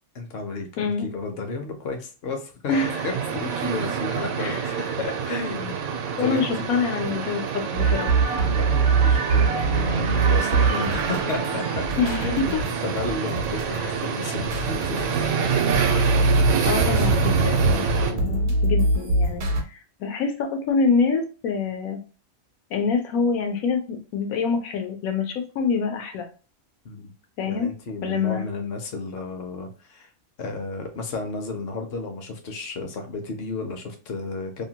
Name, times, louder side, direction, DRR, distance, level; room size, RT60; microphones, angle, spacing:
voice 1, 0.1-2.7 3.0-3.1 3.4-4.6 5.0-5.7 6.2-6.5 8.4-11.9 12.2-15.6 18.1-18.5 26.8-27.1 27.5-30.1 30.4-34.6, left 3 dB, 55° left, 4 dB, 0.8 m, -32 dB
voice 2, 0.8-1.1 2.7-3.0 4.4-4.8 6.2-8.1 10.7-10.9 12.0-12.4 13.8-13.9 16.7-22.0 22.7-26.3 27.4-27.7 28.0-28.4, left 5 dB, 85° left, 4 dB, 1.1 m, -26 dB
sound 1, 2.7-18.1, right 6 dB, 85° right, 1.0 m, -26 dB
sound 2, 7.7-19.6, right 3 dB, 70° right, 0.9 m, -24 dB
2.8 x 2.1 x 2.8 m, 0.36 s
omnidirectional pair, 1.4 m